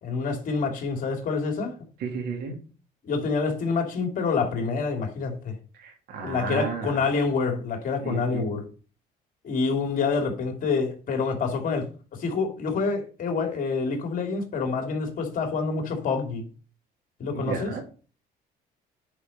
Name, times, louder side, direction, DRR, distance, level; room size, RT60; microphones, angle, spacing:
voice 1, 0.0-1.7 3.0-5.5 6.2-8.6 9.4-11.9 12.2-16.5 17.2-17.7, left 4 dB, 55° left, 2.9 m, -27 dB
voice 2, 2.0-2.5 5.8-6.9 8.0-8.4 17.3-17.8, right 5 dB, 75° right, 3.3 m, -32 dB
10.0 x 5.2 x 5.6 m
cardioid pair, 110°, 17 cm